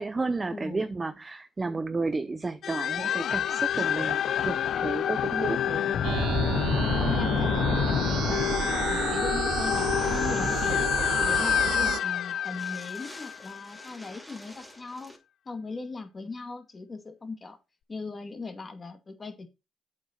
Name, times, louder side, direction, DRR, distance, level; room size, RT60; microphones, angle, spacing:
voice 1, 0.0-5.9, right 3 dB, 25° right, 0.6 m, -32 dB
voice 2, 0.5-0.9 3.8-3.9 5.8-6.1 7.0-8.5 8.9-15.1 15.5-17.6 17.9-19.5, left 3 dB, 30° left, 2.2 m, -39 dB
sound 1, 2.6-13.9, left 9 dB, 65° left, 0.4 m, -27 dB
sound 2, 6.0-12.0, right 11 dB, 80° right, 0.3 m, -31 dB
sound 3, 9.5-11.4 11.7-11.8 12.0-12.1 12.4-15.2, equal, ahead, 2.9 m, -48 dB
8.0 x 6.5 x 4.4 m
cardioid pair, 90°, 0 cm